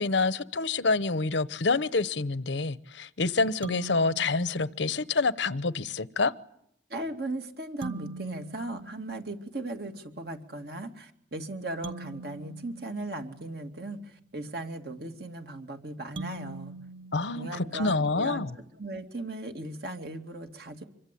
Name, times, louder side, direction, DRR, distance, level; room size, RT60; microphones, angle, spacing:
voice 1, 0.0-6.3 17.1-18.5, left 3 dB, 75° left, 0.9 m, -27 dB
sound 1, 3.6-5.3 7.8-9.8 11.8-14.0 16.2-18.2, right 3 dB, 30° right, 1.0 m, -44 dB
voice 2, 6.9-16.7 17.3-18.5 18.8-20.8, right 2 dB, 55° right, 2.5 m, -37 dB
26.0 x 22.5 x 8.5 m
head